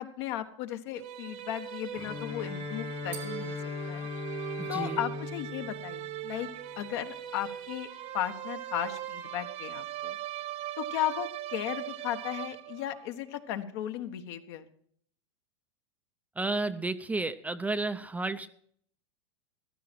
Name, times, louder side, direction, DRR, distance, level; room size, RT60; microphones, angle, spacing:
voice 1, 0.0-3.6 3.9-4.1 4.7-6.5 6.8-7.9 8.1-10.2 10.8-14.6, left 12 dB, 60° left, 7 dB, 1.3 m, -35 dB
sound 1, 0.9-13.0, right 13 dB, 45° right, 1.3 m, -40 dB
Bowed string instrument, 1.9-6.9, left 6 dB, 30° left, 1.4 m, -40 dB
sound 2, 3.1-5.4, right 6 dB, 75° right, 2.0 m, -50 dB
voice 2, 4.6-5.0 16.4-18.5, right 3 dB, 10° right, 10 dB, 0.6 m, -32 dB
14.5 x 12.0 x 4.4 m, 0.62 s
hypercardioid pair, 105°, 15 cm